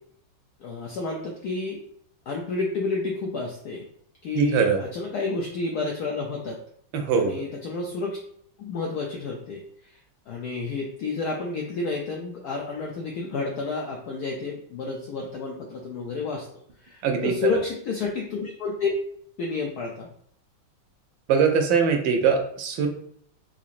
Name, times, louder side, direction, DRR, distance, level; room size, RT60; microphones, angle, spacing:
voice 1, 0.6-1.8 2.3-3.9 4.2-6.6 7.1-8.2 8.6-9.6 10.3-16.5 16.8-18.9 19.4-20.1, left 4 dB, 85° left, -1 dB, 0.8 m, -30 dB
voice 2, 4.3-4.8 6.9-7.3 17.0-17.3 21.3-22.9, right 6 dB, 75° right, 4 dB, 1.2 m, -22 dB
3.8 x 3.1 x 2.4 m, 0.64 s
omnidirectional pair, 2.2 m